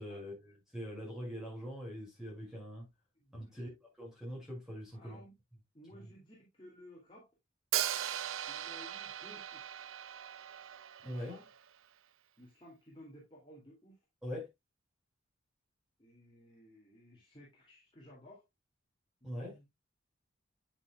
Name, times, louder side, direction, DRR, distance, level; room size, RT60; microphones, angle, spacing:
voice 1, 0.0-2.9 3.3-5.2 5.9-6.1 11.0-11.4 14.2-14.5 19.2-19.6, equal, ahead, 5.7 m, -43 dB
voice 2, 3.1-3.6 4.9-5.4 5.7-7.3 8.5-9.8 11.0-11.5 12.4-14.0 16.0-18.4 19.2-19.7, equal, 25° left, 2.5 m, -56 dB
Hi-hat, 7.7-11.7, right 11 dB, 75° right, 0.5 m, -38 dB
8.6 x 8.6 x 2.3 m
head